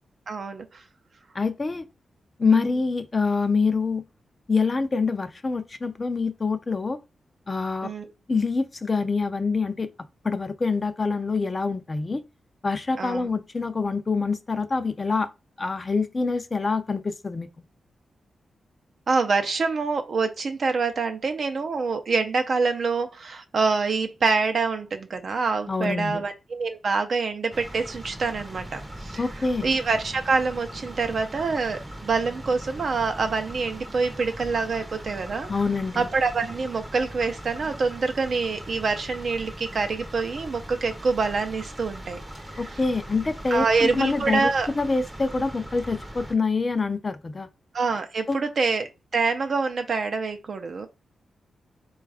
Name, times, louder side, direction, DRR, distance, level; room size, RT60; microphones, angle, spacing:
voice 1, 0.3-0.8 7.8-8.1 13.0-13.3 19.1-29.2 29.6-35.5 36.0-42.2 42.6-42.7 43.5-44.7 47.7-50.9, right 4 dB, 50° right, 0.5 m, -26 dB
voice 2, 1.3-1.8 2.4-4.0 4.5-7.0 7.5-7.9 8.3-9.9 10.2-12.2 12.6-15.3 15.6-17.5 25.7-26.3 29.2-29.7 35.5-36.1 42.6-44.5 44.8-47.5 48.3-48.4, left 4 dB, 25° left, 0.4 m, -25 dB
sound 1, 27.5-46.3, right 1 dB, 10° right, 0.7 m, -40 dB
4.2 x 2.3 x 4.7 m
wide cardioid pair, 145°, 0 cm